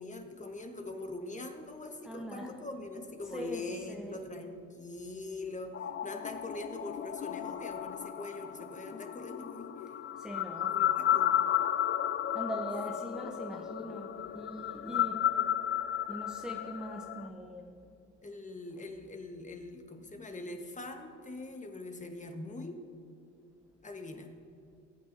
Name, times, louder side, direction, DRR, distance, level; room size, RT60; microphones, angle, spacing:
voice 1, 0.0-9.9 10.6-11.4 14.9-15.0 18.2-22.8 23.8-24.4, left 2 dB, 25° left, 1.3 m, -43 dB
voice 2, 2.0-2.5 3.3-4.2 10.1-10.8 12.3-15.3 16.1-17.8, equal, ahead, 0.8 m, -41 dB
sound 1, 5.7-17.3, left 10 dB, 40° left, 0.4 m, -33 dB
19.5 x 8.6 x 2.7 m
cardioid pair, 90°, 30 cm